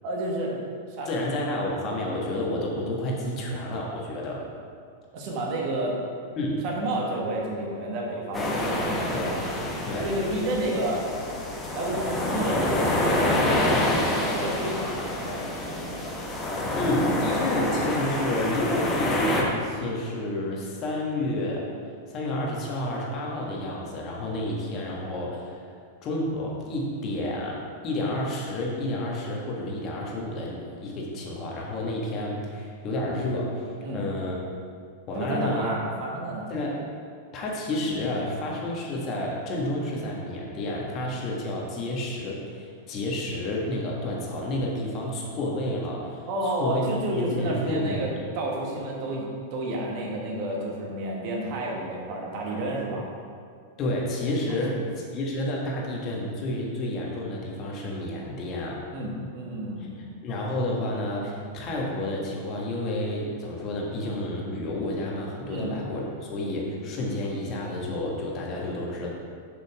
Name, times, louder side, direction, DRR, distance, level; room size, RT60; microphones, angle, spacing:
voice 1, 0.0-0.5 0.9-1.3 5.1-6.0 6.6-9.5 10.0-11.0 11.7-13.0 13.5-16.1 33.8-34.0 35.1-36.5 46.3-53.1 54.5-54.9 58.9-60.0 65.5-65.7, right 1 dB, 45° right, -2 dB, 1.7 m, -31 dB
voice 2, 1.0-4.5 6.4-6.6 9.1-9.4 9.9-10.1 16.7-21.7 22.1-25.7 26.0-34.4 35.1-35.7 36.5-36.8 37.3-46.8 47.1-48.2 53.8-58.8 59.8-59.9 60.2-69.1, left 1 dB, 35° left, -2 dB, 1.6 m, -30 dB
sound 1, 8.3-19.4, left 1 dB, 20° left, 1.4 m, -27 dB
6.8 x 6.1 x 4.9 m, 2.2 s
figure-of-eight pair, 95°, 0 cm